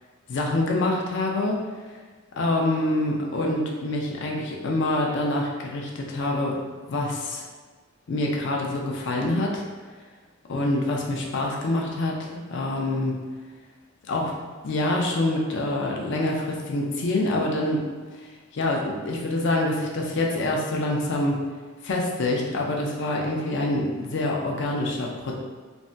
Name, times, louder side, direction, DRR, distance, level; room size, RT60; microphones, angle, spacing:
voice 1, 0.3-1.6 2.4-6.6 6.9-7.4 8.1-9.6 10.5-13.2 14.1-14.4 14.6-17.8 18.5-21.4 21.8-25.4, left 2 dB, 60° left, -1 dB, 0.5 m, -26 dB
3.3 x 2.1 x 2.6 m, 1.4 s
head